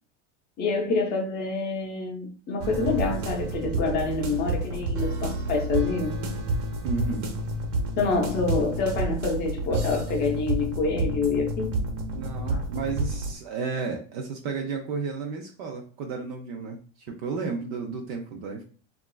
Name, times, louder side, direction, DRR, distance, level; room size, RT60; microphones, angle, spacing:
voice 1, 0.6-6.2 8.0-11.8 12.5-12.6, left 4 dB, 25° left, 0.6 m, -27 dB
sound 1, 2.6-13.4, right 2 dB, 70° right, 0.9 m, -30 dB
voice 2, 6.8-7.3 12.1-18.6, right 4 dB, 40° right, 0.4 m, -33 dB
2.9 x 2.4 x 2.2 m
supercardioid pair, 155°, 37 cm